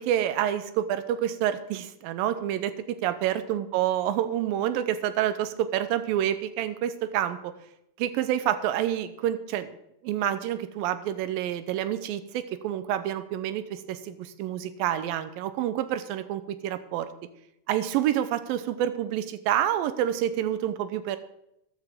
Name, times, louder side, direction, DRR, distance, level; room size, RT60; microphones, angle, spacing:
voice 1, 0.0-7.5 8.0-9.8 10.0-17.1 17.7-21.2, right 11 dB, 85° right, 12 dB, 2.5 m, -28 dB
14.5 x 11.0 x 3.6 m, 0.80 s
omnidirectional pair, 4.1 m